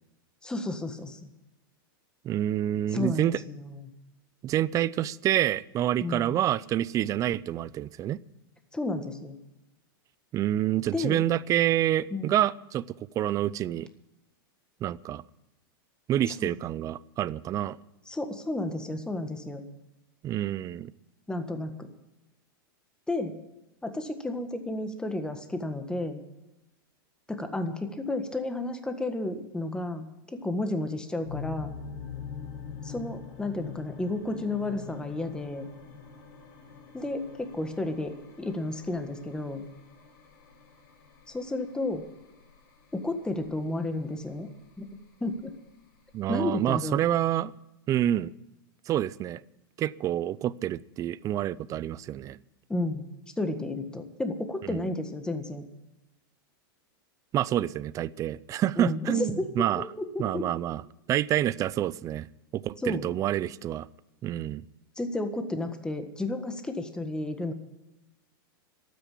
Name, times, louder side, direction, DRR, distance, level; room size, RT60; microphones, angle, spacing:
voice 1, 0.4-1.2 2.9-3.9 6.0-6.3 8.7-9.4 10.9-11.2 12.1-12.3 16.3-16.5 18.1-19.6 21.3-21.9 23.1-23.4 23.8-26.2 27.3-31.7 32.8-35.7 36.9-39.7 41.3-42.1 42.9-44.5 44.8-44.9 45.2-45.5 46.3-47.0 52.7-53.1 53.4-55.6 58.7-59.5 59.8-60.5 62.8-63.1 64.9-67.5, left 2 dB, 5° left, 7 dB, 1.5 m, -32 dB
voice 2, 2.2-3.4 4.4-8.2 10.3-12.8 13.2-13.9 14.8-15.2 16.1-17.8 20.2-20.9 46.1-47.5 47.9-48.3 48.9-49.4 49.8-52.4 54.6-54.8 57.3-59.8 60.2-60.8 61.1-62.3 62.5-63.9 64.2-64.6, right 12 dB, 30° right, 20 dB, 0.4 m, -27 dB
sound 1, 31.2-47.0, left 6 dB, 60° left, 5.3 m, -45 dB
12.5 x 9.3 x 10.0 m, 0.98 s
hypercardioid pair, 125°, 12 cm